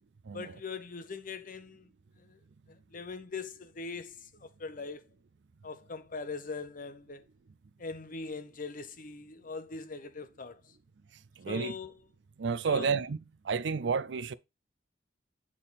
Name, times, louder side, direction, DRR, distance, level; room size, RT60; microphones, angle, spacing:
voice 1, 0.3-1.9 2.2-2.4 2.7-5.1 5.6-7.2 7.8-10.8 11.5-11.9 12.6-12.9, left 4 dB, 45° left, 0.8 m, -41 dB
voice 2, 11.4-11.7 12.4-13.2 13.4-14.3, right 5 dB, 65° right, 0.4 m, -30 dB
8.3 x 3.7 x 4.1 m
head